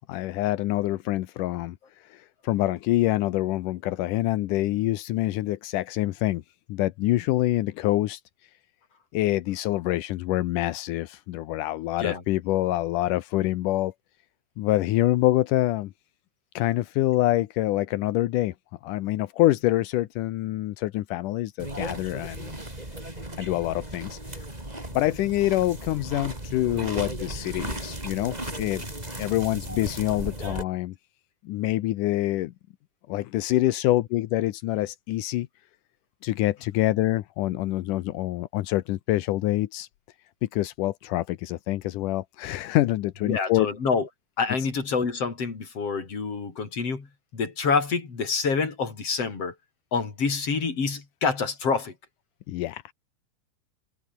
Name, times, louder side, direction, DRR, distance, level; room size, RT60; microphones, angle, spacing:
voice 1, 0.1-6.4 6.7-8.2 9.1-13.9 14.6-15.9 16.6-18.5 18.8-22.5 23.4-24.4 24.9-28.9 29.2-31.0 31.4-32.5 33.1-35.5 36.2-39.9 40.4-43.7 44.6-44.7 52.5-52.9, left 16 dB, 85° left, 2.4 m, -26 dB
sound 1, 21.6-30.6, right 1 dB, 10° right, 4.7 m, -36 dB
voice 2, 43.3-44.1 44.4-47.1 47.3-49.5 49.9-51.9, left 5 dB, 45° left, 5.2 m, -27 dB
omnidirectional pair, 3.7 m